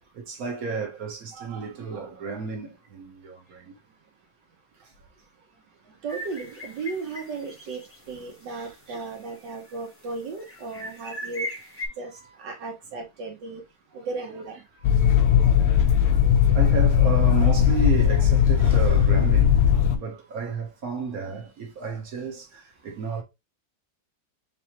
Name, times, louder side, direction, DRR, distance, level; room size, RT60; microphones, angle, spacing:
voice 1, 0.1-3.8 4.8-4.9 5.9-6.0 8.5-8.7 13.9-14.1 15.4-15.8 16.5-19.7 19.9-23.2, right 5 dB, 55° right, 1.5 m, -32 dB
voice 2, 6.0-11.5 12.0-13.6 13.9-14.7, right 4 dB, 75° right, 1.8 m, -35 dB
sound 1, 6.1-8.0 8.3-8.4 8.9-9.8 10.4-11.9, left 1 dB, 10° left, 0.8 m, -38 dB
sound 2, 14.8-20.0, left 9 dB, 75° left, 0.6 m, -18 dB
4.1 x 3.5 x 3.0 m
omnidirectional pair, 1.9 m